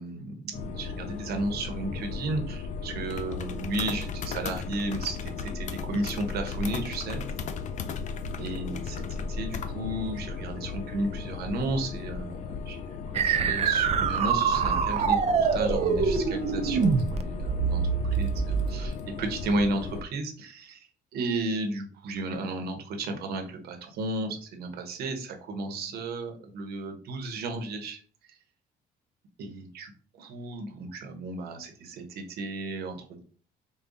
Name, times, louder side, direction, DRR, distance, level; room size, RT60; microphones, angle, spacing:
voice 1, 0.0-7.2 8.4-9.0 9.3-28.0 28.3-28.4 29.4-29.9 30.2-33.2, right 2 dB, 70° right, 5 dB, 0.9 m, -34 dB
sound 1, 0.5-20.0, left 5 dB, 45° left, 0.4 m, -36 dB
sound 2, 13.1-18.9, right 6 dB, 40° right, 0.4 m, -25 dB
4.9 x 2.3 x 2.6 m, 0.42 s
cardioid pair, 110°, 17 cm